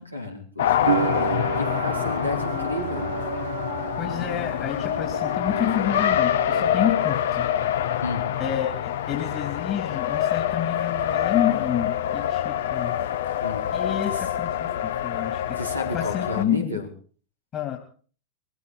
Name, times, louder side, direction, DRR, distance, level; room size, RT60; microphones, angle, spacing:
voice 1, 0.0-3.1 8.0-8.3 13.4-13.7 14.1-14.2 15.6-16.9, left 2 dB, 90° left, 1 dB, 3.9 m, -32 dB
Race car auto racing, 0.6-16.4, left 10 dB, 60° left, 0.9 m, -26 dB
sound 1, 0.9-7.7 7.9-8.8, right 9 dB, 65° right, 0.7 m, -32 dB
voice 2, 4.0-7.5 8.4-13.0 13.7-15.4 15.9-16.8 17.5-17.8, left 10 dB, 30° left, 2 dB, 3.1 m, -29 dB
21.5 x 15.5 x 4.1 m, 0.42 s
figure-of-eight pair, 90°, 0 cm